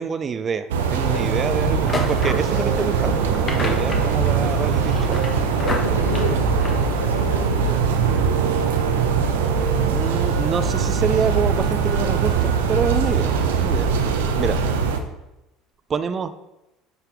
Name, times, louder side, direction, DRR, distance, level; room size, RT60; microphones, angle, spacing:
voice 1, 0.0-5.2 9.9-13.9 14.4-14.5 15.9-16.3, right 6 dB, 35° right, 11 dB, 0.6 m, -26 dB
sound 1, 0.7-15.0, right 6 dB, 70° right, 0.8 m, -21 dB
sound 2, 1.8-7.3, left 2 dB, 30° left, 1.4 m, -31 dB
voice 2, 5.5-8.0 14.3-14.6, left 1 dB, 90° left, 3 dB, 1.0 m, -31 dB
9.8 x 5.7 x 3.5 m, 0.96 s
figure-of-eight pair, 65°, 0 cm